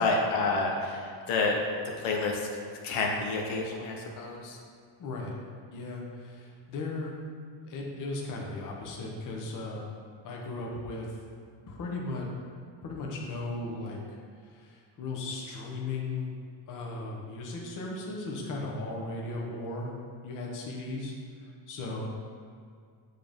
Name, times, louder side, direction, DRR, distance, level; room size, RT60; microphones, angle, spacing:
voice 1, 0.0-1.6 2.0-2.5 2.8-4.6, left 3 dB, 80° left, 0 dB, 1.0 m, -29 dB
voice 2, 5.0-5.4 5.7-7.1 7.7-9.8 10.2-11.2 11.7-12.3 12.8-16.3 16.7-19.9 20.2-22.1, left 2 dB, 40° left, -2 dB, 0.9 m, -36 dB
7.5 x 3.8 x 3.5 m, 2.1 s
cardioid pair, 150°, 48 cm